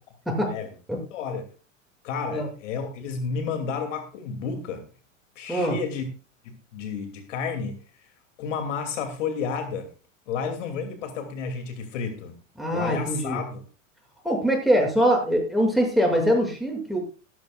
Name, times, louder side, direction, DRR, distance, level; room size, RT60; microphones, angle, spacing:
voice 1, 1.1-1.5 2.0-4.8 5.4-6.1 6.4-7.8 8.4-9.9 10.3-12.4 12.7-13.6, left 5 dB, 65° left, 8 dB, 2.7 m, -31 dB
voice 2, 12.6-13.4 14.2-17.0, equal, ahead, 0 dB, 7.2 m, -23 dB
16.5 x 13.5 x 2.4 m, 0.33 s
hypercardioid pair, 90°, 39 cm